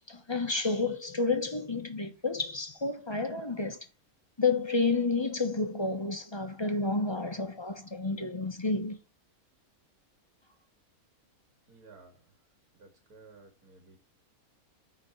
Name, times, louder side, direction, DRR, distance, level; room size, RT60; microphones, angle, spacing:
voice 1, 0.0-3.8 4.4-9.0, left 3 dB, 20° left, 1.0 m, -30 dB
voice 2, 11.7-12.3 12.7-14.0, right 3 dB, 80° right, 2.5 m, -55 dB
9.2 x 4.4 x 4.7 m
omnidirectional pair, 1.6 m